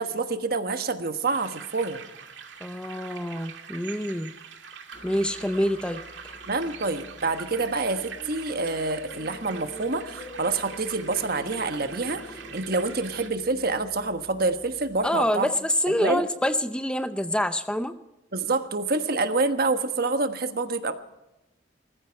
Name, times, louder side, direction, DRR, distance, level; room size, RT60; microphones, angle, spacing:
voice 1, 0.0-2.0 6.5-15.5 15.9-16.3 18.3-20.9, right 3 dB, 55° right, 8 dB, 1.3 m, -27 dB
sound 1, 1.2-13.3, right 6 dB, 75° right, 2.1 m, -43 dB
voice 2, 2.6-4.3 5.0-6.0 15.0-17.9, left 1 dB, 5° left, 10 dB, 0.6 m, -26 dB
sound 2, 4.9-15.1, left 1 dB, 30° left, 5.1 m, -46 dB
20.0 x 15.0 x 4.6 m, 0.96 s
head